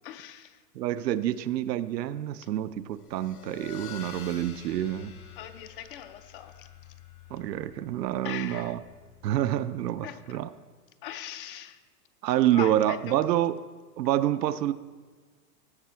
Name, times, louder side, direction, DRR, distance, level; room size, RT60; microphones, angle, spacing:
voice 1, 0.0-0.6 5.4-6.7 8.2-8.8 10.0-10.4 11.0-11.8 12.5-13.2, left 11 dB, 35° left, 11 dB, 0.5 m, -40 dB
voice 2, 0.7-5.1 7.3-8.8 9.2-10.5 12.2-13.6 14.0-14.7, right 12 dB, 80° right, 13 dB, 0.7 m, -27 dB
sound 1, 2.9-9.9, left 9 dB, 65° left, 2.1 m, -48 dB
16.0 x 6.4 x 4.4 m, 1.4 s
hypercardioid pair, 140°, 48 cm